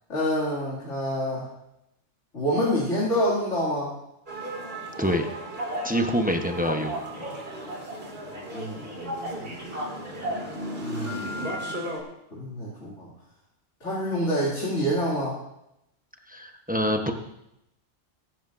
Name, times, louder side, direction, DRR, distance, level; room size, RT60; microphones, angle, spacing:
voice 1, 0.1-1.5 2.3-3.9 8.5-9.6 10.8-11.5 12.3-13.1 13.8-15.4, equal, 80° left, -8 dB, 2.8 m, -27 dB
sound 1, 4.3-12.0, equal, 55° right, 2.7 m, -37 dB
Telephone, 5.5-5.9 6.4-8.0 8.3-10.5 11.0-11.8, equal, 85° right, 3.3 m, -35 dB
voice 2, 5.8-6.9 16.3-17.1, equal, 10° right, 4 dB, 0.8 m, -25 dB
21.0 x 11.0 x 2.6 m, 0.84 s
omnidirectional pair, 1.2 m